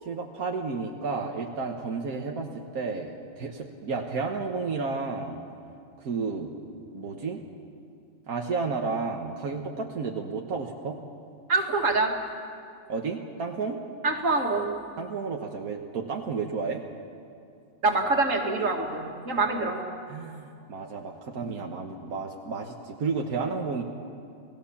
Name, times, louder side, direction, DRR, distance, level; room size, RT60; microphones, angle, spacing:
voice 1, 0.0-5.4 6.0-6.5 6.9-7.4 8.3-11.0 12.9-13.8 15.0-16.8 20.1-23.8, right 4 dB, 90° right, 1 dB, 1.8 m, -32 dB
voice 2, 11.5-12.1 14.0-14.7 17.8-19.8, right 3 dB, 60° right, 2 dB, 2.6 m, -25 dB
29.0 x 18.0 x 7.2 m, 2.5 s
omnidirectional pair, 1.5 m